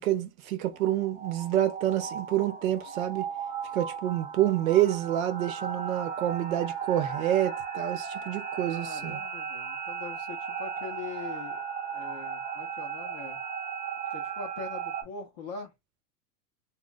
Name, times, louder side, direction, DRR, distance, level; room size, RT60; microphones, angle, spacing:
voice 1, 0.0-3.2 3.7-9.2, right 12 dB, 60° right, 0.9 m, -28 dB
sound 1, 0.7-15.0, right 7 dB, 15° right, 0.7 m, -36 dB
voice 2, 8.6-11.6 11.9-13.4 14.1-15.7, left 5 dB, 30° left, 0.4 m, -42 dB
2.2 x 2.2 x 3.8 m
supercardioid pair, 175°, 46 cm